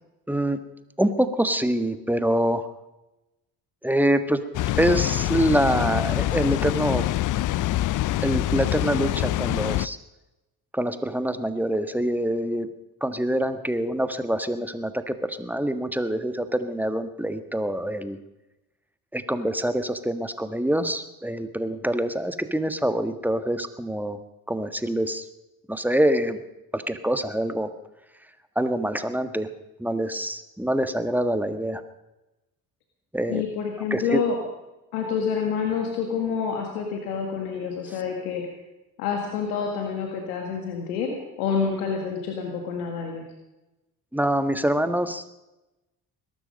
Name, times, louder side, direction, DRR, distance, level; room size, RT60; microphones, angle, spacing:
voice 1, 0.3-0.6 1.0-2.7 3.8-4.4 4.8-7.1 8.2-10.0 10.7-12.7 13.0-18.2 19.1-24.2 24.5-25.3 25.7-26.4 26.7-27.7 28.5-29.5 29.8-31.8 33.1-33.4 33.9-34.2 44.1-45.2, right 1 dB, 5° right, 9 dB, 1.5 m, -25 dB
Water, 4.5-9.9, left 15 dB, 45° left, 0.5 m, -25 dB
voice 2, 33.3-34.4 34.9-38.5 39.0-43.2, left 6 dB, 85° left, 2 dB, 1.9 m, -28 dB
21.5 x 12.5 x 5.3 m, 1.0 s
hypercardioid pair, 50°, 44 cm